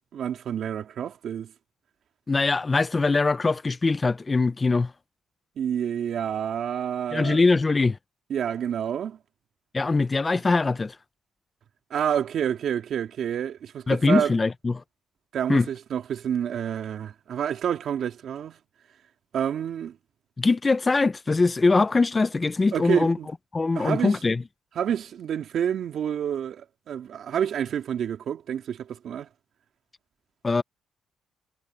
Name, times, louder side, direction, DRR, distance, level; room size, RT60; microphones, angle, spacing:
voice 1, 0.1-1.5 5.6-7.4 8.3-9.2 11.9-14.3 15.3-18.6 19.3-20.0 22.7-23.3 23.7-24.2 24.7-29.3, right 9 dB, 65° right, 3.0 m, -28 dB
voice 2, 2.3-4.9 7.1-8.0 9.7-10.9 13.9-14.8 15.5-15.7 20.4-23.2 23.5-24.4 30.4-30.6, left 3 dB, 25° left, 0.9 m, -22 dB
cardioid pair, 90°, 0 cm